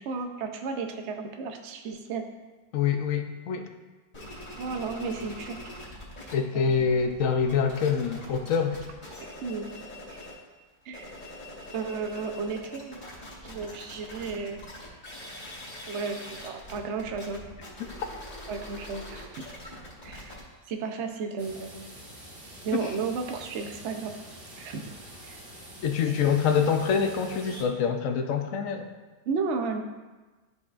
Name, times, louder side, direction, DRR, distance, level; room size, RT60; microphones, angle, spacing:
voice 1, 0.0-2.3 4.6-5.5 6.5-6.8 9.2-9.7 10.1-10.3 10.9-11.1 11.7-13.0 13.4-14.6 15.9-17.4 18.5-19.4 20.0-20.3 20.7-21.9 22.6-24.1 24.6-24.9 25.2-25.4 29.3-29.8, right 5 dB, 75° right, 4 dB, 0.6 m, -33 dB
voice 2, 2.7-3.7 6.3-8.8 22.7-22.9 25.8-28.9, left 6 dB, 75° left, 5 dB, 0.7 m, -25 dB
sound 1, 4.1-6.3 6.6-10.4 10.8-22.4, left 1 dB, 25° left, 2.3 m, -44 dB
sound 2, 21.4-27.6, equal, 35° right, 1.3 m, -45 dB
12.5 x 4.7 x 2.4 m, 1.2 s
omnidirectional pair, 2.0 m